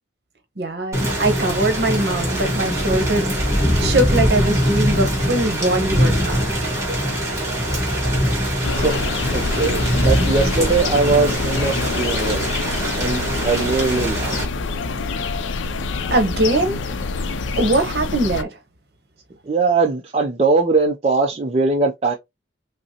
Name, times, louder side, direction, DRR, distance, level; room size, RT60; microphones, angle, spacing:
voice 1, 0.6-6.4 16.1-16.8 17.6-18.6, right 2 dB, 55° right, 0.9 m, -21 dB
Thunder / Rain, 0.9-14.4, equal, 15° right, 1.7 m, -22 dB
sound 1, 8.6-18.4, left 3 dB, 80° left, 0.4 m, -26 dB
voice 2, 8.7-9.1 9.3-12.5 13.0-14.4 19.5-22.1, right 3 dB, 30° right, 0.4 m, -20 dB
5.2 x 2.0 x 2.8 m
head